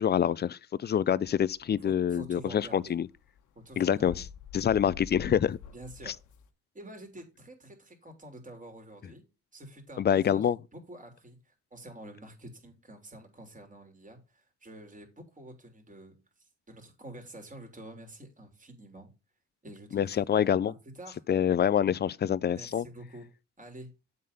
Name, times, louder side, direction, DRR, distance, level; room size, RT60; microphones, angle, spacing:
voice 1, 0.0-3.1 3.8-4.2 4.5-5.6 6.1-6.2 10.0-10.6 19.9-20.7 21.3-22.8, left 9 dB, 35° left, 0.4 m, -26 dB
sound 1, 1.2-6.5, left 7 dB, 80° left, 1.3 m, -47 dB
voice 2, 1.8-2.9 3.5-4.2 5.7-6.2 6.7-9.3 9.5-19.1 19.6-21.2 22.5-23.3 23.6-23.9, right 1 dB, 25° right, 3.2 m, -48 dB
7.7 x 4.1 x 6.6 m
cardioid pair, 90°, 30 cm